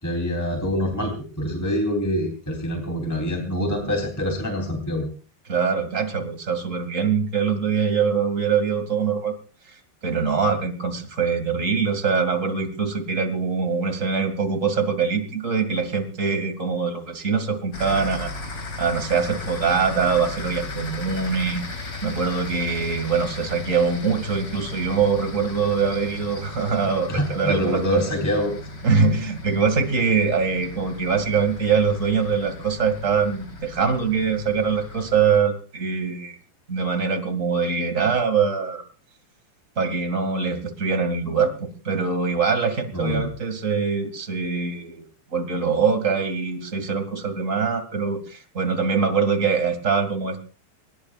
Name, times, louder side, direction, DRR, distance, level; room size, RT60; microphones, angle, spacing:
voice 1, 0.0-5.1 27.1-28.5 42.9-43.3, left 1 dB, 5° left, 2 dB, 2.4 m, -25 dB
voice 2, 5.5-9.3 9.7-9.8 10.0-18.3 18.8-21.6 22.0-28.0 28.8-36.4 36.7-38.8 39.7-45.0 45.3-50.4, right 5 dB, 35° right, 7 dB, 1.3 m, -23 dB
sound 1, 17.7-35.4, left 2 dB, 30° left, 2.7 m, -36 dB
24.5 x 21.0 x 2.5 m, 0.36 s
omnidirectional pair, 5.2 m